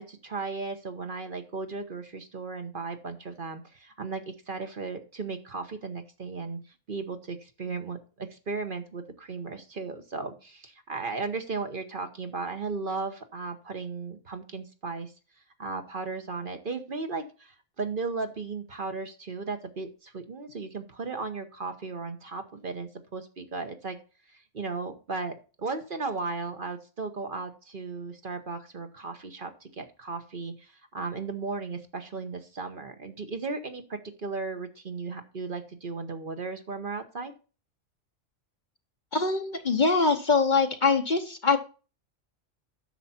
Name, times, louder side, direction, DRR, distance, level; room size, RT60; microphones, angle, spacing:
voice 1, 0.0-6.6 6.9-15.1 15.6-24.0 24.3-37.3, right 4 dB, 45° right, 7 dB, 1.2 m, -36 dB
voice 2, 39.1-41.6, left 4 dB, 40° left, 7 dB, 1.0 m, -23 dB
10.5 x 6.8 x 4.3 m, 0.35 s
omnidirectional pair, 1.3 m